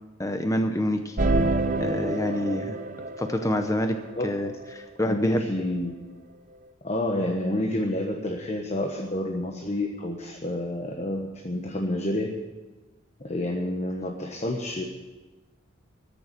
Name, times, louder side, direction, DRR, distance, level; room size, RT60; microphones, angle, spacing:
voice 1, 0.2-1.2 1.8-2.8 3.2-4.0 4.2-5.4, left 1 dB, 15° left, 6 dB, 0.7 m, -27 dB
sound 1, 1.2-4.9 5.6-5.7, right 2 dB, 40° right, 0.8 m, -28 dB
voice 2, 5.1-6.0 6.8-12.3 13.2-14.8, left 1 dB, 35° left, 1 dB, 1.2 m, -29 dB
13.5 x 6.9 x 9.7 m, 1.2 s
head